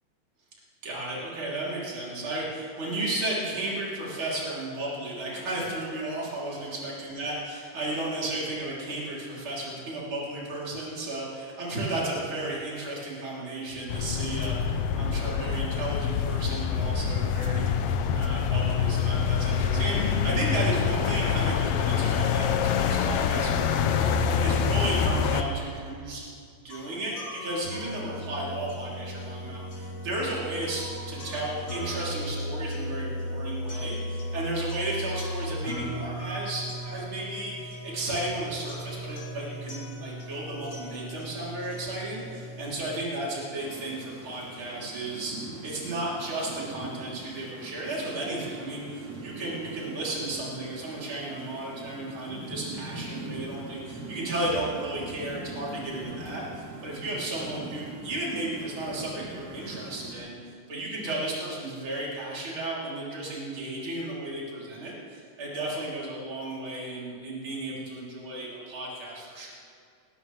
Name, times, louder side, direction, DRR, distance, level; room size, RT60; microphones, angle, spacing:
voice 1, 0.8-17.7 18.1-26.2 26.6-60.4 60.7-69.5, right 1 dB, 40° right, -6 dB, 3.8 m, -34 dB
sound 1, 13.9-25.4, left 7 dB, 75° left, 1.4 m, -26 dB
sound 2, 26.7-42.7, equal, 45° left, 3.7 m, -36 dB
sound 3, 43.5-60.2, right 2 dB, 65° right, 5.1 m, -42 dB
20.5 x 16.0 x 3.2 m, 2.3 s
omnidirectional pair, 3.5 m